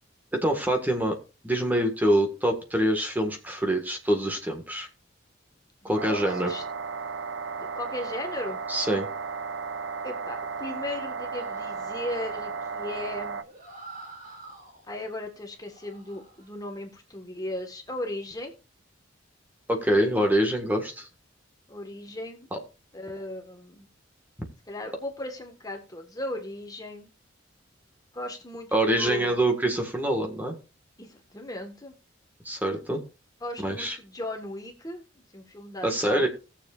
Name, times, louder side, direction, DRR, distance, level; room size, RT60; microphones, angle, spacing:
voice 1, 0.3-1.1 1.4-4.9 5.8-6.5 8.7-9.1 19.7-21.1 22.5-22.6 28.7-30.5 32.4-33.0 33.6-34.0 35.8-36.3, right 1 dB, 10° right, 3 dB, 1.6 m, -25 dB
voice 2, 5.8-6.6 7.6-8.6 10.0-13.4 14.9-18.5 21.7-22.5 22.9-23.9 24.7-27.1 28.1-29.4 31.0-31.9 33.4-35.0 35.3-36.3, left 1 dB, 20° left, 3 dB, 1.5 m, -37 dB
sound 1, 6.0-13.4, right 5 dB, 65° right, 0.6 m, -34 dB
sound 2, 11.3-15.1 15.5-16.5, right 2 dB, 45° right, 3.8 m, -48 dB
18.0 x 7.2 x 2.5 m, 0.32 s
head